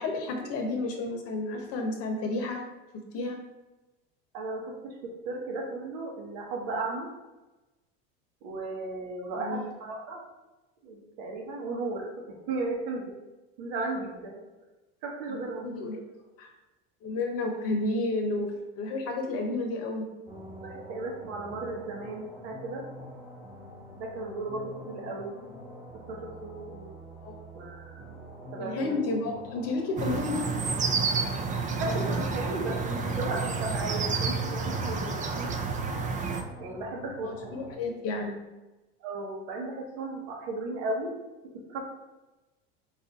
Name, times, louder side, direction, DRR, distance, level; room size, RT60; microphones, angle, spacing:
voice 1, 0.0-2.6 3.1-3.4 9.4-9.6 15.3-15.4 15.6-16.0 16.4-16.5 17.0-20.1 27.2-27.4 28.6-30.4 37.2-38.4, left 2 dB, 50° left, 3 dB, 0.9 m, -31 dB
voice 2, 4.3-7.1 8.4-10.2 10.8-13.1 13.6-14.4 15.0-15.7 20.6-22.8 23.9-25.3 25.9-26.9 27.5-28.0 28.5-29.0 31.7-35.6 36.6-37.6 39.0-41.2 41.5-41.8, right 2 dB, 70° right, 0 dB, 1.1 m, -35 dB
sound 1, 20.3-37.7, right 1 dB, 10° right, 1.1 m, -47 dB
sound 2, 30.0-36.4, right 4 dB, 25° right, 0.5 m, -30 dB
3.9 x 2.6 x 4.0 m, 1.1 s
supercardioid pair, 100°, 30 cm